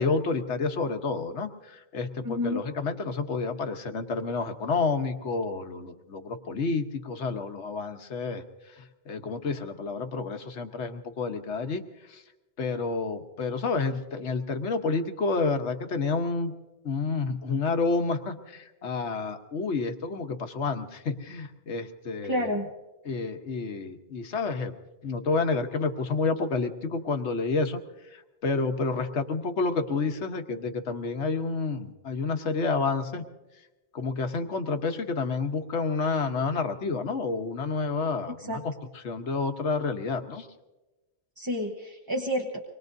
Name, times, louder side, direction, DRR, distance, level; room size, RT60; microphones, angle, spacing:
voice 1, 0.0-11.8 12.1-12.2 12.6-16.5 16.8-22.5 23.0-24.7 25.0-27.8 28.1-33.2 33.9-40.5, left 4 dB, 75° left, 6 dB, 1.4 m, -29 dB
voice 2, 2.2-2.6 22.2-22.7 38.5-38.6 41.4-42.6, left 1 dB, 20° right, 1 dB, 1.0 m, -29 dB
25.5 x 21.5 x 2.7 m, 1.1 s
omnidirectional pair, 1.2 m